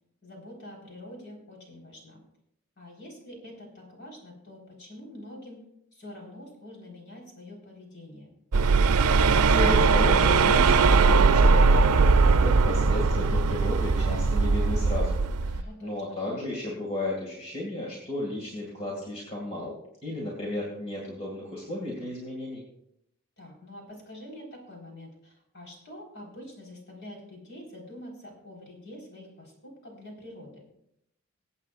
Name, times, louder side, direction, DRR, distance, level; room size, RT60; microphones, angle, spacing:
voice 1, 0.2-2.2 2.8-5.6 5.9-8.3 15.5-16.2 23.4-30.7, left 1 dB, 50° left, -1 dB, 4.3 m, -46 dB
sound 1, 8.5-15.6, right 4 dB, 90° right, 0.5 m, -20 dB
voice 2, 9.4-19.7 20.0-22.6, left 1 dB, 30° left, -3 dB, 2.2 m, -34 dB
24.0 x 8.3 x 2.5 m, 0.76 s
head